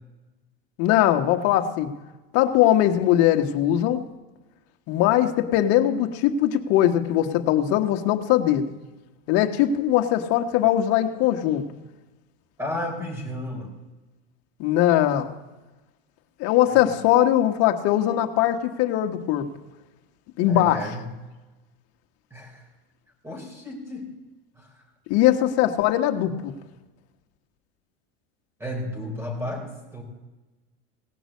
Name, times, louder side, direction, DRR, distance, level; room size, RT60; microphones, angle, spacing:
voice 1, 0.8-1.9 2.3-4.0 4.9-8.7 9.3-11.6 14.6-15.3 16.4-19.5 20.4-20.8 25.1-26.5, left 12 dB, 50° left, 5 dB, 1.3 m, -21 dB
voice 2, 12.6-13.7 16.7-16.9 20.4-21.1 22.3-22.6 23.2-24.1 24.6-24.8 28.6-30.0, left 1 dB, 10° right, 2 dB, 4.2 m, -33 dB
17.5 x 6.1 x 8.3 m, 1.1 s
supercardioid pair, 120°, 31 cm